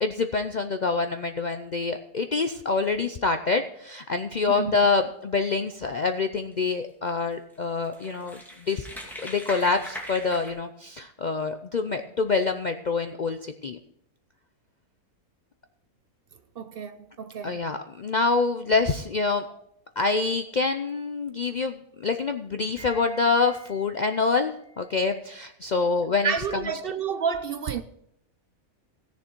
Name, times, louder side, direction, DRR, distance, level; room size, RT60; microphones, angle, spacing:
voice 1, 0.0-8.4 8.7-8.9 9.2-13.4 13.6-13.8 17.4-19.4 20.0-26.3, left 4 dB, 70° left, 0.4 m, -26 dB
voice 2, 4.5-4.8 7.9-8.0 16.6-17.7 19.5-19.6 26.2-27.8, right 6 dB, 65° right, 0.6 m, -30 dB
sound 1, 6.5-6.7 7.3-7.4 7.7-10.5, equal, ahead, 2.2 m, -40 dB
16.5 x 7.0 x 4.5 m
omnidirectional pair, 1.5 m